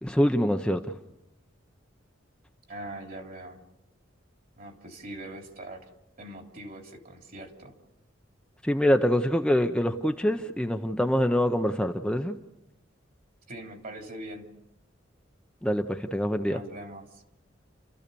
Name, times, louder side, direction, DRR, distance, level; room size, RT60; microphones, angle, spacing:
voice 1, 0.0-0.8 8.6-12.4 15.6-16.6, equal, 5° left, 5 dB, 0.8 m, -25 dB
voice 2, 2.7-3.6 4.6-5.8 6.2-7.7 13.5-14.4 16.4-17.2, right 1 dB, 50° right, 3 dB, 3.2 m, -42 dB
30.0 x 14.0 x 6.9 m, 0.92 s
head